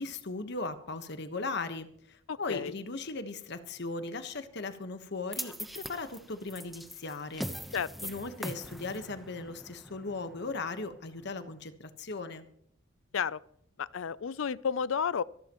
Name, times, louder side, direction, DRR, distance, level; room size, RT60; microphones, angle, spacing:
voice 1, 0.0-7.5 8.0-12.4, left 3 dB, 60° left, 9 dB, 1.3 m, -38 dB
voice 2, 2.3-2.7 7.7-7.9 13.1-13.4 13.8-15.2, left 7 dB, 75° left, 20 dB, 0.5 m, -31 dB
sound 1, 5.3-11.6, equal, ahead, 1.0 m, -42 dB
25.5 x 13.0 x 3.0 m, 0.64 s
head